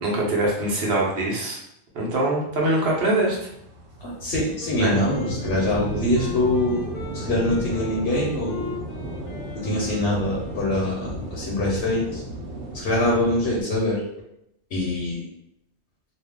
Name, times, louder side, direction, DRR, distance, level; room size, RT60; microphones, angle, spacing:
voice 1, 0.0-1.6 1.9-3.4 4.8-5.0, right 1 dB, 65° right, -3 dB, 1.0 m, -23 dB
sound 1, 3.0-13.6, right 1 dB, 90° right, 0.9 m, -34 dB
voice 2, 4.0-6.9 7.1-8.7 9.5-12.2 12.7-14.0 14.7-15.2, left 1 dB, 75° left, -5 dB, 1.0 m, -24 dB
Wind instrument woodwind instrument, 4.6-11.2, left 4 dB, 50° left, 0.6 m, -38 dB
2.6 x 2.2 x 3.5 m, 0.78 s
omnidirectional pair, 1.1 m